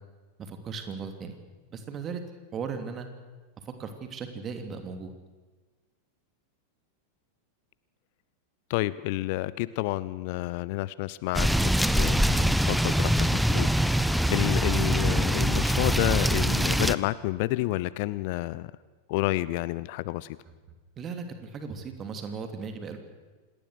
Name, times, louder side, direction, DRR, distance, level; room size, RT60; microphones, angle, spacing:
voice 1, 0.4-1.4 1.7-2.2 2.5-3.1 3.8-5.1 21.0-23.0, right 5 dB, 25° right, 7 dB, 3.0 m, -37 dB
voice 2, 8.7-18.7 19.1-20.4, left 18 dB, 50° left, 19 dB, 0.6 m, -30 dB
sound 1, 11.3-16.9, equal, ahead, 0.8 m, -23 dB
27.5 x 19.5 x 6.5 m, 1.3 s
figure-of-eight pair, 90°, 0 cm